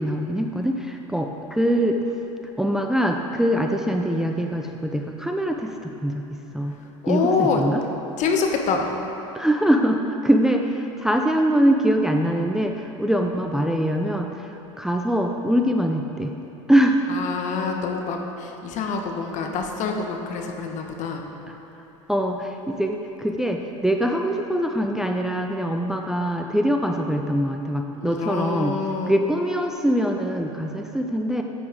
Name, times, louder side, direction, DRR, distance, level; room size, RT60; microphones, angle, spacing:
voice 1, 0.0-2.0 2.6-6.2 6.5-6.7 7.1-7.8 9.3-14.5 14.8-16.3 16.7-17.0 22.1-28.8 29.1-31.4, equal, 5° right, 3 dB, 0.6 m, -23 dB
voice 2, 7.0-7.6 8.2-8.9 17.1-21.2 28.0-29.1, left 5 dB, 50° left, 3 dB, 1.3 m, -26 dB
12.5 x 8.4 x 3.7 m, 3.0 s
hypercardioid pair, 85°, 16 cm